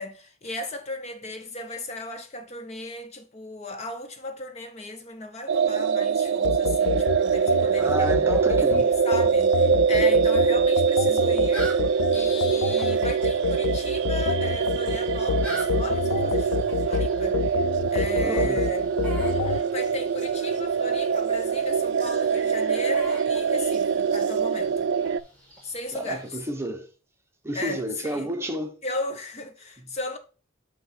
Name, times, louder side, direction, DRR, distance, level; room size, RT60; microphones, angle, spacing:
voice 1, 0.0-17.4 17.9-18.8 19.3-24.9 25.6-26.3 27.5-28.3 28.8-30.2, left 2 dB, 30° left, 0.6 m, -36 dB
sound 1, 5.5-25.2, right 6 dB, 55° right, 0.3 m, -24 dB
sound 2, 6.4-19.6, left 6 dB, 75° left, 0.3 m, -28 dB
voice 2, 7.8-8.9 18.1-18.6 25.9-26.9 27.4-28.8, right 1 dB, 10° right, 0.8 m, -30 dB
sound 3, 10.6-26.3, right 1 dB, 5° left, 2.4 m, -45 dB
8.2 x 2.9 x 5.6 m
head